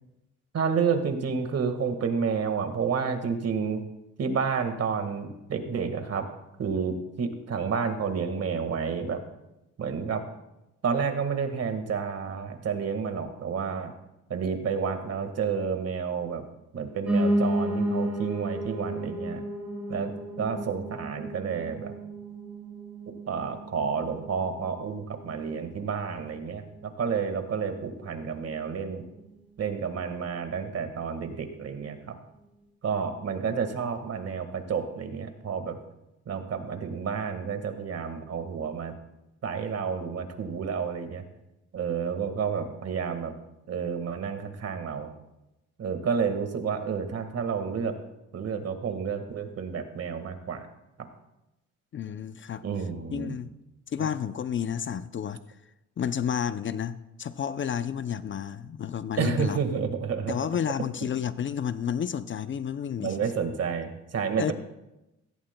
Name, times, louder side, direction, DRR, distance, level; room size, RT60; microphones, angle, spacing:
voice 1, 0.5-3.8 4.2-6.3 6.6-9.2 9.8-10.2 10.8-13.9 14.3-16.5 16.7-19.4 19.9-21.9 23.3-29.0 29.6-32.2 32.8-35.8 36.2-38.9 39.4-41.2 41.7-43.3 43.7-45.1 45.8-47.9 48.3-50.6 52.6-53.4 54.0-54.1 59.2-60.3 63.0-64.5, right 6 dB, 55° right, 7 dB, 1.7 m, -30 dB
Piano, 17.1-26.2 26.6-27.7 28.0-28.1 28.3-28.4 28.7-28.8 29.3-29.4, right 1 dB, 5° right, 5.0 m, -32 dB
voice 2, 51.9-52.6 53.1-53.5 53.9-55.4 56.0-59.6 60.3-63.2 64.4-64.5, left 8 dB, 40° left, 13 dB, 0.5 m, -31 dB
16.5 x 15.5 x 2.2 m, 0.94 s
cardioid pair, 90°, 30 cm